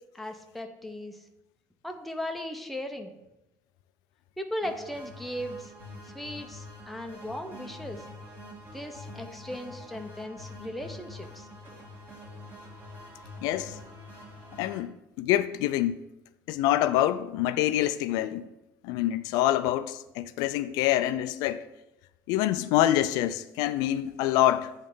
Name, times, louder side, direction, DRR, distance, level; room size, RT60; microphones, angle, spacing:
voice 1, 0.1-1.2 1.8-3.1 4.4-5.7 6.1-8.0 8.7-11.5, left 1 dB, ahead, 0.6 m, -37 dB
sound 1, 4.6-14.8, left 1 dB, 25° right, 1.9 m, -45 dB
voice 2, 13.4-13.8 14.6-16.0 16.5-18.5 18.8-21.7 22.3-24.7, left 13 dB, 80° left, 0.3 m, -26 dB
8.7 x 3.2 x 5.5 m
cardioid pair, 145°, 7 cm